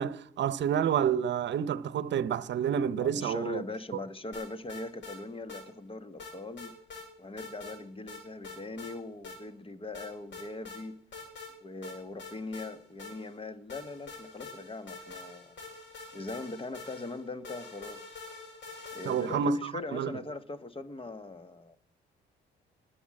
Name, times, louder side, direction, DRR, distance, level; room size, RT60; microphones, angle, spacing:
voice 1, 0.0-3.6 19.0-19.6 19.9-20.1, right 8 dB, 65° right, 0.8 m, -29 dB
voice 2, 3.0-6.8 7.2-11.0 11.6-15.5 16.1-18.1 18.9-21.8, left 2 dB, 25° left, 1.5 m, -41 dB
sound 1, 4.3-5.2 5.5-5.6 6.2-7.1 7.4-7.8 8.1-8.9 9.2-9.4 9.9-10.8 11.1-11.5 11.8-13.4 13.7-19.5, left 3 dB, 65° left, 6.8 m, -45 dB
20.0 x 8.0 x 7.7 m
cardioid pair, 90°, 20 cm